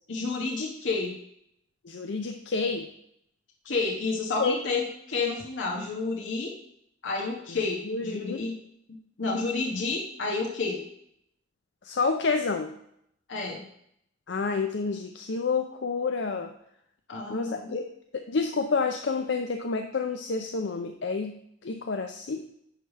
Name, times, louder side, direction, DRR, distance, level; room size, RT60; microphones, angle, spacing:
voice 1, 0.1-1.2 3.6-6.5 7.0-8.6 9.2-10.8 13.3-13.6 17.1-17.8, left 3 dB, 85° left, -3 dB, 1.4 m, -30 dB
voice 2, 1.8-2.9 4.4-4.6 7.9-8.4 11.8-12.8 14.3-16.5 17.3-17.9 18.3-22.5, left 4 dB, 65° left, 5 dB, 0.5 m, -29 dB
10.0 x 3.4 x 6.5 m, 0.73 s
head